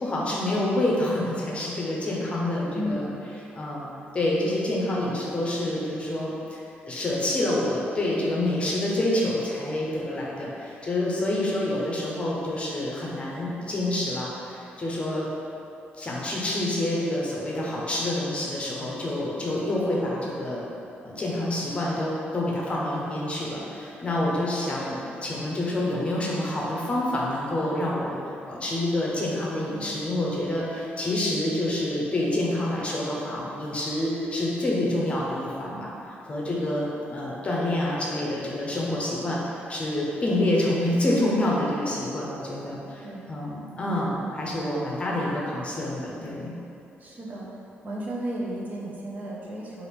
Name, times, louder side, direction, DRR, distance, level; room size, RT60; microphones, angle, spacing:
voice 1, 0.0-3.1 3.5-3.9 4.1-6.6 6.9-15.3 15.9-20.6 21.0-28.2 28.5-35.9 36.2-39.4 39.7-46.5, left 1 dB, 30° left, -4 dB, 0.7 m, -27 dB
voice 2, 2.7-3.1 43.0-43.3 47.0-47.5 47.8-49.9, equal, 40° right, -4 dB, 0.6 m, -33 dB
4.7 x 2.5 x 3.4 m, 2.8 s
cardioid pair, 130°, 4 cm